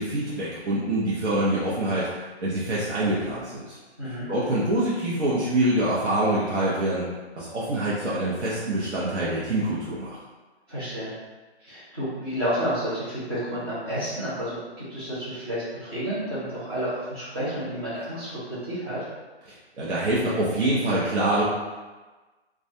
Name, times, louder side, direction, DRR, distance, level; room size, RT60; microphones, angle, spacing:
voice 1, 0.0-2.1 2.4-3.8 4.3-7.1 7.4-10.2 19.5-21.4, right 1 dB, 85° right, -8 dB, 0.8 m, -25 dB
voice 2, 4.0-4.3 10.7-11.1 11.6-19.0, equal, 20° right, -11 dB, 0.7 m, -30 dB
2.3 x 2.1 x 2.7 m, 1.2 s
hypercardioid pair, 175°, 33 cm